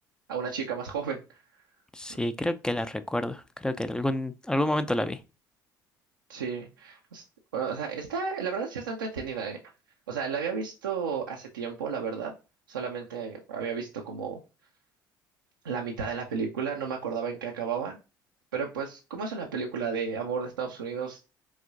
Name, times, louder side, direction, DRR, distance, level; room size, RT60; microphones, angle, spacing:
voice 1, 0.3-1.4 6.3-7.2 7.5-9.6 10.1-12.3 12.7-14.4 15.6-18.0 18.5-21.2, right 6 dB, 80° right, 0.6 m, -33 dB
voice 2, 1.9-5.2, left 1 dB, 5° left, 0.5 m, -29 dB
4.8 x 3.6 x 2.7 m
figure-of-eight pair, 55°, 11 cm